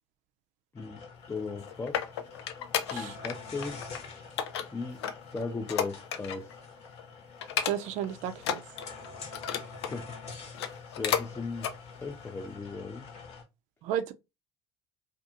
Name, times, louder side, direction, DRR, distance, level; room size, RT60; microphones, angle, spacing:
voice 1, 0.7-2.1 2.8-3.9 4.7-5.0 5.3-6.6 9.6-10.6 10.9-13.1, left 4 dB, 15° left, 0.4 m, -38 dB
sound 1, 0.8-13.4, left 4 dB, 55° left, 1.0 m, -46 dB
sound 2, 1.4-3.4 3.6-4.0 4.4-6.5 6.8-7.0 7.4-8.1 8.4-10.0 10.4-11.3 11.6-11.8 12.3-12.4, left 9 dB, 85° left, 0.4 m, -33 dB
voice 2, 7.6-8.6 13.8-14.1, right 10 dB, 60° right, 0.4 m, -33 dB
2.5 x 2.4 x 2.5 m
hypercardioid pair, 75°, 14 cm